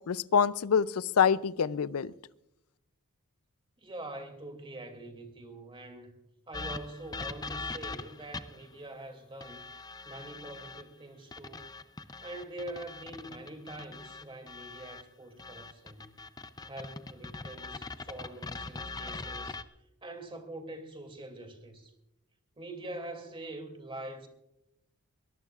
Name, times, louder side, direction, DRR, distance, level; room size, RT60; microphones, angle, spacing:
voice 1, 0.1-2.1, left 7 dB, 70° left, 0.5 m, -26 dB
voice 2, 3.8-6.1 6.5-9.6 10.0-11.7 12.2-16.1 16.7-19.6 20.0-21.9 22.6-24.3, right 1 dB, 25° right, 2.6 m, -44 dB
sound 1, 6.5-8.7 9.4-10.8 11.3-15.0 15.4-19.6, left 3 dB, 20° left, 0.5 m, -42 dB
23.5 x 18.0 x 2.4 m
head